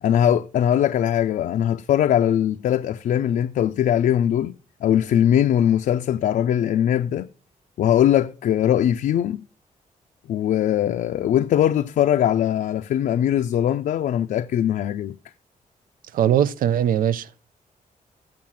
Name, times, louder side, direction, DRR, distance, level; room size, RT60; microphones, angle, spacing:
voice 1, 0.0-4.6 4.8-7.3 7.8-9.4 10.3-15.2, left 10 dB, 75° left, 0.5 m, -21 dB
voice 2, 16.1-17.4, right 10 dB, 80° right, 0.5 m, -21 dB
7.8 x 7.4 x 7.2 m
wide cardioid pair, 165°, 14 cm